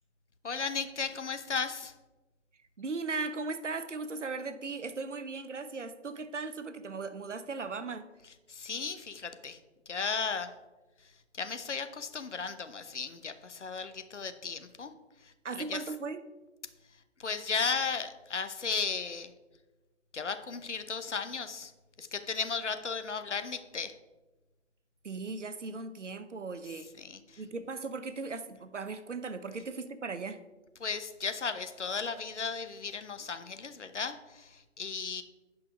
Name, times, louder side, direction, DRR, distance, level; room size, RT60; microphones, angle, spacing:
voice 1, 0.4-1.9 8.5-9.6 9.9-10.5 11.0-14.9 15.2-15.8 17.2-19.3 20.1-21.7 22.0-23.9 27.0-27.4 30.8-35.2, left 5 dB, 70° left, 9 dB, 0.9 m, -35 dB
voice 2, 2.8-8.1 15.4-16.3 25.0-26.9 27.4-30.4, right 4 dB, 70° right, 11 dB, 0.9 m, -37 dB
9.0 x 5.6 x 5.1 m, 1.1 s
figure-of-eight pair, 140°, 37 cm